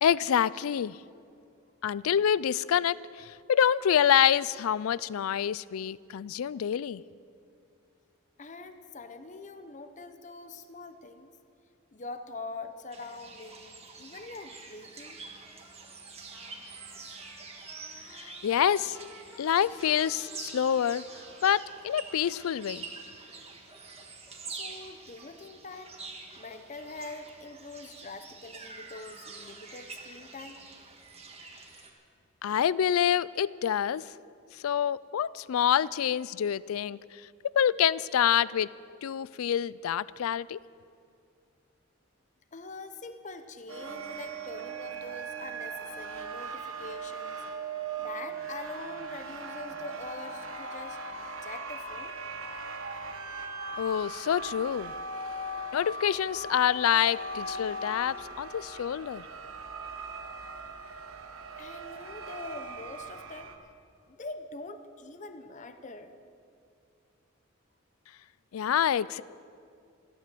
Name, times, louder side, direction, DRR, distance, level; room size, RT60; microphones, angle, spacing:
voice 1, 0.0-1.0 1.8-7.0 18.1-19.0 19.4-21.0 21.4-22.9 32.4-34.0 34.6-37.0 37.6-38.7 39.0-40.6 53.8-54.9 55.7-59.2 68.5-69.2, left 9 dB, 90° left, 20 dB, 0.4 m, -27 dB
voice 2, 8.4-11.3 11.9-15.2 24.5-26.0 26.4-30.6 42.5-47.4 48.0-52.1 53.3-53.5 61.6-63.6 64.1-66.1, left 3 dB, 35° left, 8 dB, 0.7 m, -44 dB
sound 1, 12.9-31.9, right 4 dB, 30° right, 1.7 m, -46 dB
Trumpet, 16.3-23.4, left 1 dB, ahead, 2.4 m, -57 dB
sound 2, 43.7-63.6, right 3 dB, 80° right, 1.3 m, -39 dB
14.5 x 12.5 x 7.7 m, 2.4 s
head